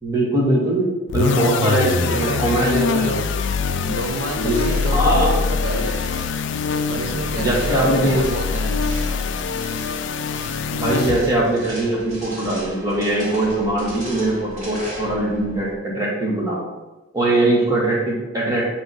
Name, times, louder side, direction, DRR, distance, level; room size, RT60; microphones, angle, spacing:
voice 1, 0.0-3.1 4.4-4.6 4.8-5.3 5.7-5.8 7.4-8.3 10.7-16.6 17.1-18.6, right 1 dB, 15° right, -4 dB, 1.4 m, -21 dB
sound 1, 1.1-11.5, left 5 dB, 65° left, 0.3 m, -23 dB
voice 2, 1.2-3.3 3.9-6.1 6.9-8.9, right 1 dB, 80° right, 2 dB, 0.7 m, -29 dB
sound 2, 3.9-15.7, equal, 35° right, 2.0 m, -38 dB
7.8 x 3.0 x 4.0 m, 1.1 s
head